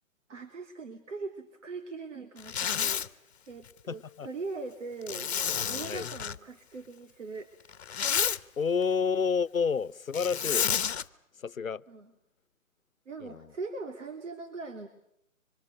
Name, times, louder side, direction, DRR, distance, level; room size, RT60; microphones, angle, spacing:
voice 1, 0.3-5.3 5.7-7.5 11.9-12.1 13.0-14.9, right 3 dB, 65° right, 3.2 m, -41 dB
Zipper (clothing), 2.4-3.1 5.1-6.4 7.7-8.4 10.1-11.0, left 8 dB, 55° left, 1.3 m, -30 dB
voice 2, 3.9-4.3 5.9-6.1 8.6-10.7 11.4-11.8 13.2-13.5, left 6 dB, 85° left, 1.0 m, -29 dB
28.5 x 25.5 x 6.5 m
figure-of-eight pair, 140°, 40 cm